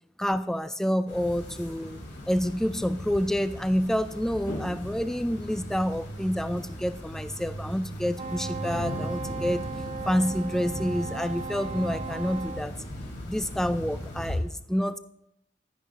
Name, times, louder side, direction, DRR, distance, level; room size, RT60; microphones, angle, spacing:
voice 1, 0.2-2.0 2.3-9.6 10.1-12.7 13.3-15.0, equal, 5° left, 13 dB, 0.3 m, -28 dB
sound 1, 1.1-14.4, equal, 65° left, 3.0 m, -38 dB
Wind instrument woodwind instrument, 8.1-12.6, right 5 dB, 30° right, 0.7 m, -37 dB
11.0 x 10.0 x 3.7 m, 0.81 s
head